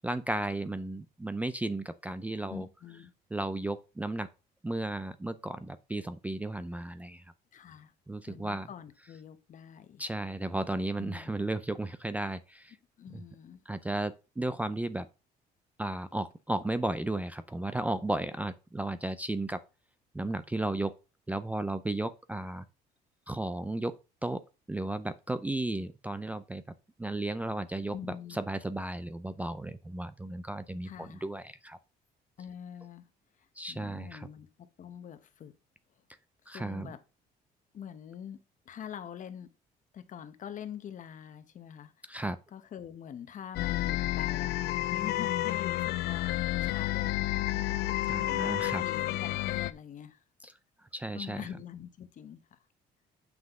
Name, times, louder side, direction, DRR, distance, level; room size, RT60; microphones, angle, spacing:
voice 1, 0.0-2.7 3.3-4.3 4.6-7.2 8.1-8.7 10.0-12.8 13.1-13.2 13.7-15.1 15.8-19.6 20.1-20.9 21.3-22.6 23.3-24.0 24.2-24.4 24.7-26.6 27.0-31.8 33.6-34.3 36.5-36.9 42.1-42.4 48.1-48.8 50.4-50.5 50.9-51.4, right 2 dB, 10° right, 0.4 m, -34 dB
voice 2, 2.5-3.1 7.5-7.9 8.3-10.0 11.0-11.3 13.0-13.6 27.9-28.4 30.8-31.2 32.4-33.1 33.7-34.5 34.8-35.5 36.5-37.0 37.7-39.5 39.9-41.9 42.5-44.6 44.9-47.4 48.2-48.5 48.8-50.2 51.1-52.6, left 9 dB, 50° left, 1.0 m, -44 dB
sound 1, 43.6-49.7, left 15 dB, 85° left, 0.5 m, -30 dB
7.4 x 5.9 x 3.6 m
cardioid pair, 110°, 17 cm